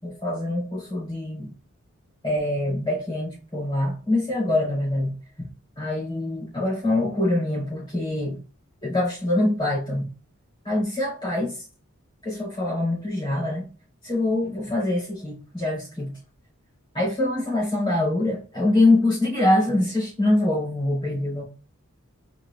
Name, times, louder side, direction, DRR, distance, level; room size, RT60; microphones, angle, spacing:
voice 1, 0.0-1.5 2.2-5.5 5.8-8.4 8.8-10.1 10.6-11.6 12.2-13.7 14.0-16.1 16.9-21.4, left 1 dB, 20° left, 2.7 m, -24 dB
4.8 x 4.4 x 2.3 m
head